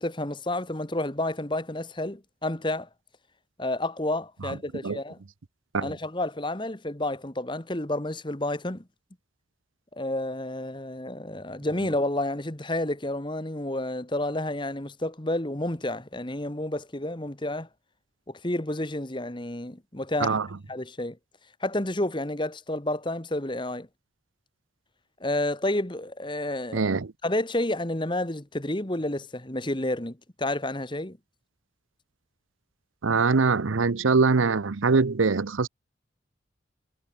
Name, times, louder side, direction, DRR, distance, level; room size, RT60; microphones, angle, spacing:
voice 1, 0.0-2.9 3.6-5.2 5.8-8.8 10.0-17.7 18.3-20.4 20.7-21.2 21.6-23.9 25.2-26.8 27.2-31.2, left 1 dB, 25° left, 1.5 m, -30 dB
voice 2, 26.7-27.1 33.0-35.7, right 4 dB, 85° right, 0.7 m, -23 dB
head